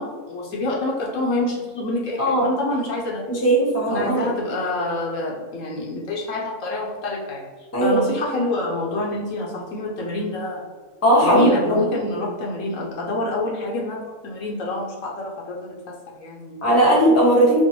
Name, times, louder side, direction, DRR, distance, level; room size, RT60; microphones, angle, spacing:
voice 1, 0.0-3.3 3.9-10.7 11.2-16.7, left 2 dB, 70° left, -2 dB, 0.9 m, -27 dB
voice 2, 2.2-2.5 3.3-4.3 7.7-8.0 11.0-11.8 16.6-17.6, right 1 dB, 15° left, -4 dB, 0.6 m, -18 dB
4.4 x 2.1 x 2.9 m, 1.5 s
omnidirectional pair, 1.5 m